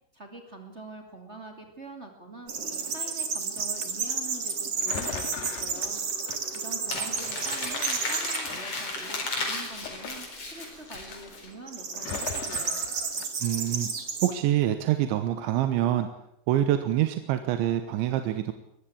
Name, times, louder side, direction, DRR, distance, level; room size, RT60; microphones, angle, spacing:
voice 1, 0.1-2.5 2.9-6.0 6.5-12.8, right 2 dB, 25° right, 3 dB, 1.5 m, -45 dB
sound 1, 2.5-8.4 9.0-9.5 11.7-14.3, right 5 dB, 40° right, 2.5 m, -32 dB
sound 2, 3.6-3.9 4.8-7.1 7.4-8.1 8.5-10.8 11.1-11.5 11.9-13.3, left 8 dB, 65° left, 3.3 m, -40 dB
Crumpling crinkling, 6.9-11.5, left 2 dB, 30° left, 5.1 m, -34 dB
voice 2, 13.4-13.9 14.2-16.1 16.5-18.5, right 12 dB, 75° right, 9 dB, 3.2 m, -25 dB
22.0 x 15.0 x 8.7 m, 0.81 s
omnidirectional pair, 5.6 m